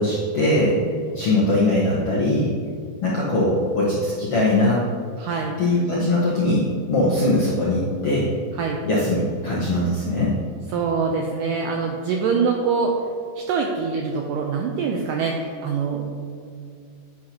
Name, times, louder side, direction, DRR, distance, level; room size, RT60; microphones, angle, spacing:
voice 1, 0.0-0.8 1.1-2.5 3.0-4.8 5.6-8.3 8.8-10.3, left 1 dB, 75° left, -6 dB, 1.4 m, -21 dB
voice 2, 0.8-1.2 5.2-5.6 7.0-7.2 8.6-8.8 10.7-12.9 13.5-16.1, right 5 dB, 85° right, 1 dB, 1.9 m, -24 dB
10.0 x 9.7 x 2.9 m, 2.3 s
omnidirectional pair, 4.5 m